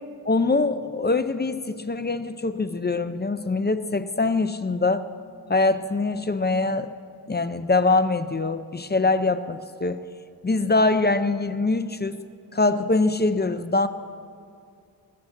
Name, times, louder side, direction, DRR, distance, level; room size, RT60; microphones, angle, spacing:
voice 1, 0.2-5.1 5.5-6.9 7.3-10.1 10.4-12.2 12.5-13.9, left 3 dB, 25° left, 11 dB, 0.5 m, -23 dB
20.5 x 7.2 x 6.5 m, 2.3 s
wide cardioid pair, 90°, 41 cm